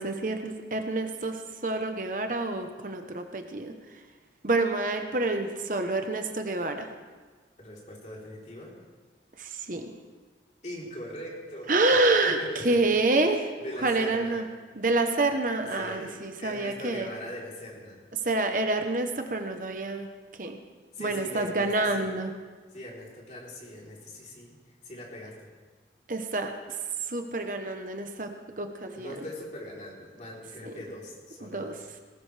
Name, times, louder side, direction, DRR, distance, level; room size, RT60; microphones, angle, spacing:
voice 1, 0.0-1.4 1.6-3.7 4.4-6.9 9.4-9.9 11.7-12.4 12.6-13.5 13.8-14.4 14.7-17.1 18.2-20.1 20.4-20.6 21.0-22.3 26.1-26.5 27.1-28.3 28.6-29.1 30.6-30.7 31.4-31.7, right 2 dB, 45° right, 5 dB, 1.0 m, -27 dB
voice 2, 7.6-8.8 10.6-12.0 12.2-13.0 13.2-14.4 14.8-14.9 15.7-18.0 20.9-22.1 22.7-24.6 24.8-25.5 28.9-31.8, equal, 40° left, -4 dB, 3.7 m, -41 dB
19.5 x 17.0 x 3.4 m, 1.4 s
head